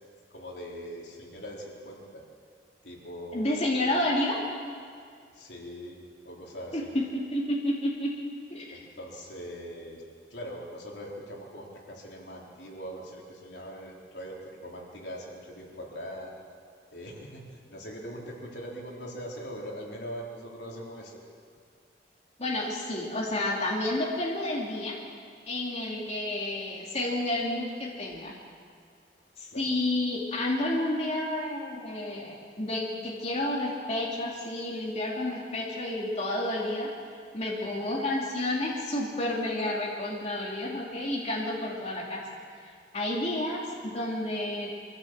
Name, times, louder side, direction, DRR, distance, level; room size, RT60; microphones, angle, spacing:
voice 1, 0.3-2.2 2.8-4.0 5.3-6.0 6.2-6.9 8.7-10.0 10.3-16.3 16.9-21.2 29.5-29.7, equal, 75° left, -2 dB, 3.7 m, -41 dB
voice 2, 3.3-4.4 6.7-8.1 8.5-8.8 22.4-25.0 25.5-28.4 29.4-36.9 37.3-42.2 42.6-44.7, left 1 dB, 40° left, -3 dB, 3.0 m, -30 dB
24.0 x 15.0 x 7.5 m, 2.2 s
head